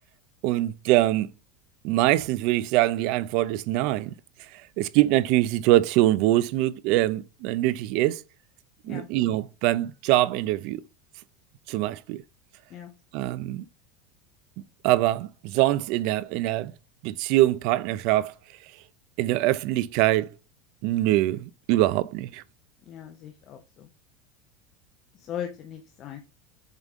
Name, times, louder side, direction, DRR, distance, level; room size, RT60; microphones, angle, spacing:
voice 1, 0.4-1.3 1.8-4.1 4.8-8.2 8.8-10.8 11.7-12.2 13.1-13.6 14.8-16.7 17.0-18.3 19.2-20.3 20.8-22.4, right 16 dB, 50° right, 0.4 m, -23 dB
voice 2, 22.9-23.9 25.2-26.2, left 9 dB, 30° left, 0.6 m, -38 dB
7.5 x 3.6 x 3.5 m
supercardioid pair, 170°, 0 cm